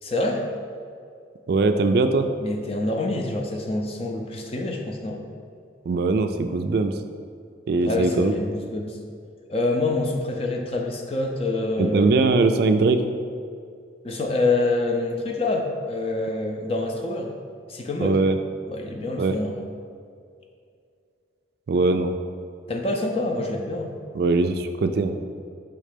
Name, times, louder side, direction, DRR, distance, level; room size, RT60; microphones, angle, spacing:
voice 1, 0.0-0.5 2.4-5.2 7.8-9.0 9.5-12.1 14.0-17.3 17.7-18.2 18.7-19.6 22.7-23.9, left 2 dB, 30° left, 2 dB, 0.5 m, -26 dB
voice 2, 1.5-2.3 5.9-6.9 7.7-8.3 11.8-13.1 18.0-18.4 19.2-19.4 21.7-22.1 24.1-25.2, right 3 dB, 55° right, 7 dB, 0.3 m, -21 dB
5.7 x 3.2 x 5.0 m, 2.3 s
head